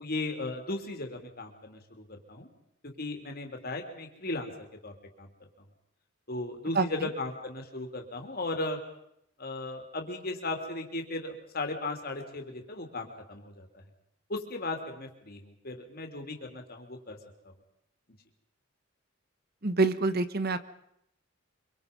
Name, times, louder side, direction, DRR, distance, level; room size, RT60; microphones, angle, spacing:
voice 1, 0.0-2.5 3.0-5.3 6.3-8.8 9.4-13.7 14.3-17.2, left 2 dB, 50° left, 3 dB, 3.4 m, -36 dB
voice 2, 6.7-7.1 19.6-20.6, right 3 dB, 50° right, 13 dB, 1.2 m, -26 dB
25.5 x 24.5 x 5.5 m, 0.78 s
head